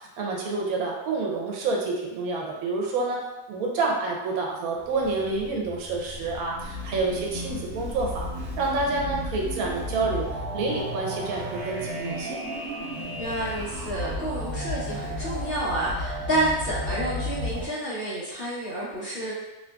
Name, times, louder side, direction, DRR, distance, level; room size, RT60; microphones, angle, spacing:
voice 1, 0.0-8.3 8.6-10.3 10.5-12.4, right 3 dB, 85° right, -1 dB, 1.1 m, -28 dB
sound 1, 4.7-17.7, equal, 50° right, 0.7 m, -34 dB
voice 2, 13.2-19.3, right 1 dB, 50° left, -8 dB, 0.8 m, -29 dB
2.9 x 2.5 x 2.2 m, 1.1 s
omnidirectional pair, 1.5 m